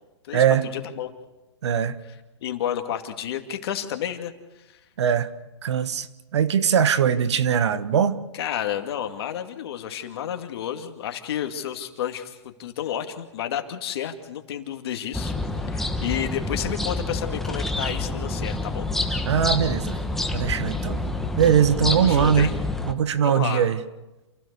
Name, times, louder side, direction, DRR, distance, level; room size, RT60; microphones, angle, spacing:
voice 1, 0.3-0.7 1.6-2.0 5.0-5.3 5.6-8.2 19.3-20.0 20.3-21.1 21.4-22.5 22.9-23.8, right 8 dB, 70° right, 1.5 m, -21 dB
voice 2, 2.4-4.3 4.7-4.8 8.3-18.9 21.9-22.5 23.2-23.7, left 10 dB, 60° left, 2.4 m, -31 dB
sound 1, 15.1-22.9, left 2 dB, ahead, 1.4 m, -28 dB
28.0 x 16.0 x 6.9 m
hypercardioid pair, 135°, 15 cm